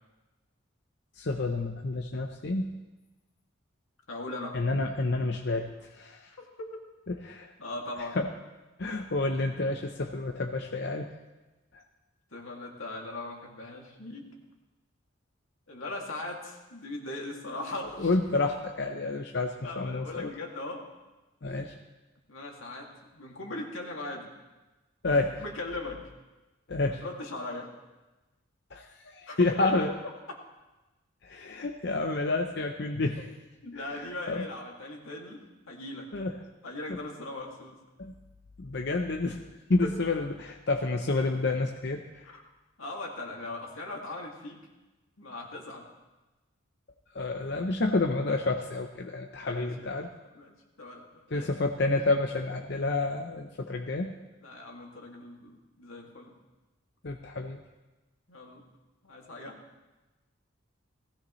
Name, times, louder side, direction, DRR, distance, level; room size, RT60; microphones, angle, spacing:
voice 1, 1.2-2.8 4.5-6.3 7.1-7.5 8.0-8.3 8.8-11.1 11.7-11.8 18.0-20.3 21.4-21.7 25.0-25.4 26.7-27.0 28.7-29.9 31.2-33.3 33.7-34.5 36.1-36.3 36.9-37.0 38.0-38.1 38.6-39.4 39.7-42.3 47.1-50.1 51.3-54.1 57.0-57.6, left 2 dB, 55° left, 3 dB, 0.7 m, -29 dB
voice 2, 4.1-4.6 6.4-6.8 7.6-8.2 12.3-14.3 15.7-18.1 19.6-20.9 22.3-24.3 25.1-26.1 26.8-27.7 29.3-29.7 30.3-30.4 33.6-35.4 35.7-36.1 36.6-37.8 42.3-42.4 42.8-44.6 45.2-45.9 49.4-49.9 50.3-51.5 54.4-56.3 58.3-58.6 59.0-59.6, left 2 dB, 80° left, 0 dB, 2.4 m, -39 dB
18.5 x 16.0 x 3.2 m, 1.1 s
head